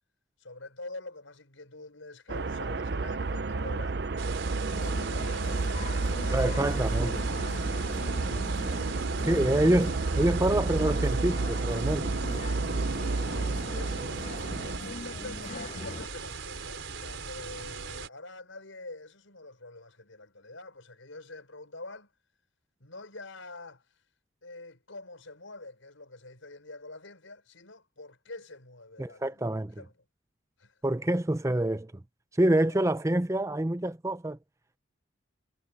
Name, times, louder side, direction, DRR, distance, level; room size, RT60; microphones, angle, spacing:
voice 1, 0.4-4.0 4.8-7.3 9.4-9.6 13.3-14.3 14.6-22.1 22.8-23.9 24.4-29.9 30.6-30.8 32.6-32.8, left 2 dB, 85° left, 5.7 m, -46 dB
sound 1, 2.3-14.8, right 3 dB, 55° right, 0.6 m, -31 dB
sound 2, 4.2-18.1, right 5 dB, 75° right, 4.0 m, -40 dB
sound 3, 4.6-16.1, left 3 dB, 35° left, 0.6 m, -41 dB
voice 2, 6.3-7.1 9.2-12.1 29.0-29.7 30.8-31.9 32.3-34.4, right 1 dB, 15° right, 0.5 m, -26 dB
head